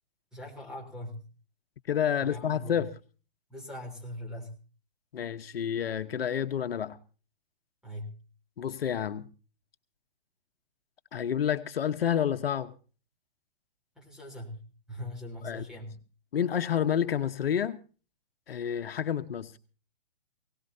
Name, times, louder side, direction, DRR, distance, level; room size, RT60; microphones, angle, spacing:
voice 1, 0.3-1.2 2.2-2.7 3.5-4.6 7.8-8.2 14.0-16.0, left 1 dB, ahead, 3.6 m, -41 dB
voice 2, 1.9-2.9 5.1-7.0 8.6-9.3 11.1-12.7 15.4-15.6 16.3-17.8 18.5-19.6, left 9 dB, 75° left, 1.2 m, -29 dB
20.5 x 18.5 x 2.7 m
hypercardioid pair, 140°, 29 cm